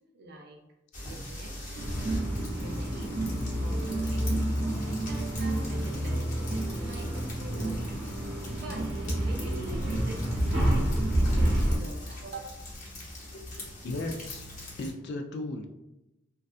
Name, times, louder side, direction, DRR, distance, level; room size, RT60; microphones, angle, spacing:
voice 1, 0.1-0.6 1.0-1.7 2.6-8.2 8.5-12.5 12.9-13.0, right 2 dB, 55° right, 0 dB, 0.5 m, -45 dB
sound 1, 0.9-14.9, left 1 dB, 45° left, 0.8 m, -36 dB
sound 2, 1.7-11.8, right 1 dB, 75° right, 0.8 m, -30 dB
voice 2, 13.8-14.4 14.8-15.7, left 2 dB, 60° left, 5 dB, 0.3 m, -35 dB
2.6 x 2.2 x 2.4 m, 0.94 s
head